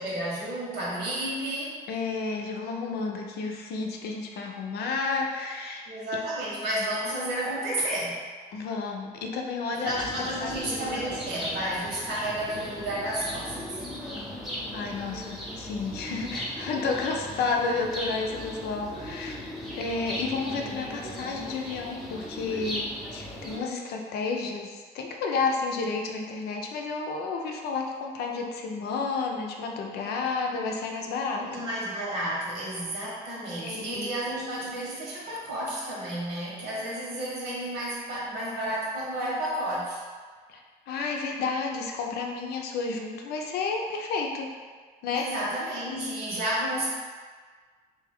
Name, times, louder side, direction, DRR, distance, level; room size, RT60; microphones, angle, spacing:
voice 1, 0.0-1.8 5.8-8.2 9.8-13.8 31.4-40.0 45.1-46.9, right 1 dB, 80° right, -6 dB, 1.4 m, -31 dB
voice 2, 1.9-5.9 6.7-6.9 8.5-11.1 14.7-19.4 19.7-31.6 33.6-34.1 40.5-40.6 40.9-44.5 45.0-45.3, left 4 dB, 70° left, 1 dB, 0.6 m, -31 dB
sound 1, 9.8-23.6, equal, ahead, 0.7 m, -38 dB
3.4 x 2.8 x 3.5 m, 1.5 s
cardioid pair, 110°, 17 cm